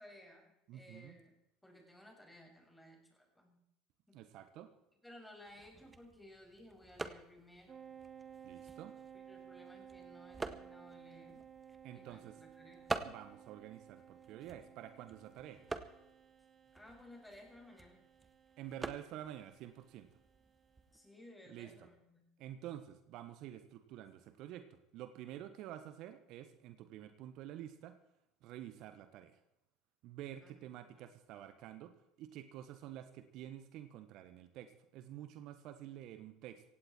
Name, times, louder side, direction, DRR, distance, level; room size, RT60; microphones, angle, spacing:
voice 1, 0.0-1.3 1.6-3.6 4.1-4.2 5.0-7.8 9.1-11.5 11.9-13.0 16.7-18.1 20.9-22.3 30.4-30.6 30.9-31.1, left 1 dB, 10° left, 1 dB, 6.4 m, -58 dB
voice 2, 0.7-1.2 4.1-4.7 8.4-8.9 11.8-12.4 13.0-15.6 18.6-20.1 21.5-21.7 22.4-24.7 24.9-28.0 28.4-29.3 30.0-31.9 32.2-36.6, right 12 dB, 60° right, 10 dB, 1.4 m, -49 dB
sound 1, 5.5-21.0, right 3 dB, 20° right, 1.5 m, -48 dB
sound 2, 7.7-20.8, right 8 dB, 40° right, 4.4 m, -57 dB
17.0 x 16.5 x 4.5 m, 0.84 s
hypercardioid pair, 70°, 0 cm